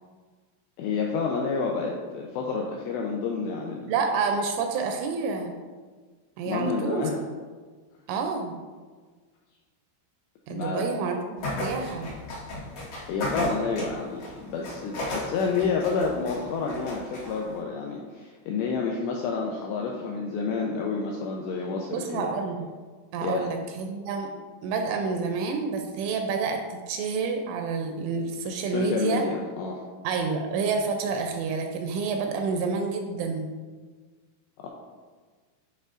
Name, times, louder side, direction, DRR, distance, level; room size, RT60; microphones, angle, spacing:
voice 1, 0.8-3.9 6.5-7.2 10.5-10.8 13.0-22.3 23.2-23.5 28.7-29.8 34.6-34.7, left 4 dB, 90° left, -1 dB, 2.4 m, -29 dB
voice 2, 3.9-5.5 6.4-7.1 8.1-8.5 10.5-12.1 21.9-22.7 23.1-24.3 24.6-29.2 30.0-33.5, right 5 dB, 85° right, 4 dB, 2.9 m, -28 dB
sound 1, 11.4-17.6, left 1 dB, 55° left, 1.9 m, -36 dB
9.0 x 5.5 x 2.5 m, 1.4 s
omnidirectional pair, 5.7 m